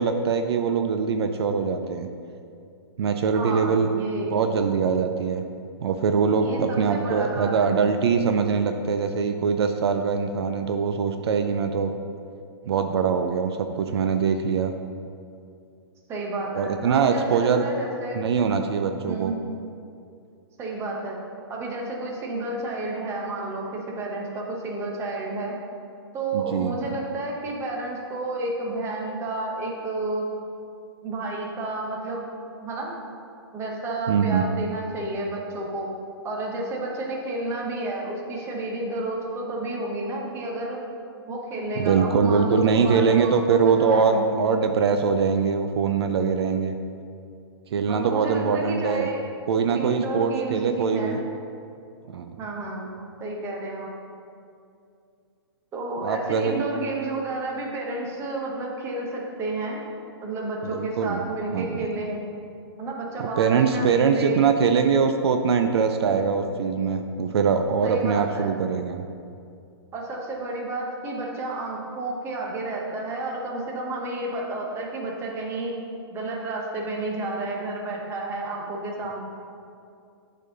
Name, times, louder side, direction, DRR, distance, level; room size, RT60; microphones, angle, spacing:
voice 1, 0.0-2.1 3.0-3.9 4.3-5.4 5.8-11.9 12.7-14.7 16.5-17.6 18.1-19.3 26.3-26.9 34.1-34.4 41.8-46.7 47.7-49.1 49.5-51.2 52.1-52.3 56.0-56.5 60.6-61.2 61.5-61.9 63.2-69.0, right 6 dB, 70° right, 6 dB, 0.5 m, -23 dB
voice 2, 3.3-4.3 6.4-7.9 16.1-18.2 19.0-19.4 20.6-21.2 21.5-25.6 26.1-30.3 31.0-32.3 32.6-32.9 33.5-35.9 36.2-40.8 41.3-44.3 47.9-49.2 49.7-51.2 52.4-53.9 55.7-59.8 60.2-62.2 62.8-64.5 67.8-68.5 69.9-75.8 76.1-79.2, right 2 dB, 20° right, -1 dB, 1.0 m, -31 dB
8.1 x 4.2 x 3.8 m, 2.5 s
hypercardioid pair, 145°, 14 cm